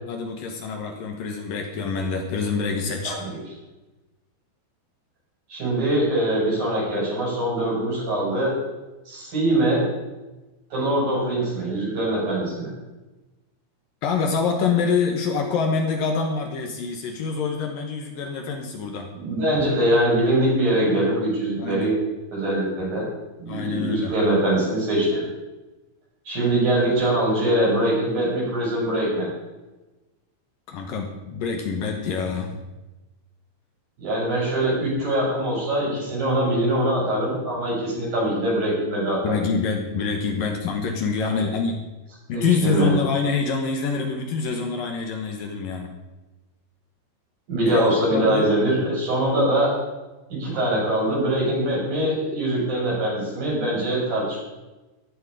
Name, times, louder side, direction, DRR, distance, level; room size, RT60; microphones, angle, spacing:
voice 1, 0.1-3.2 14.0-19.1 21.6-21.9 23.5-24.1 30.7-32.6 39.2-41.8 42.3-45.9 47.7-48.4, left 5 dB, 75° left, 3 dB, 2.1 m, -26 dB
voice 2, 5.5-8.5 9.1-9.8 10.7-12.7 19.1-21.9 22.3-23.0 23.4-25.2 26.3-29.3 34.0-39.3 41.4-41.5 42.3-43.0 47.5-49.7 50.4-54.4, right 1 dB, 40° right, -5 dB, 8.2 m, -23 dB
14.5 x 13.0 x 4.9 m, 1.1 s
omnidirectional pair, 5.9 m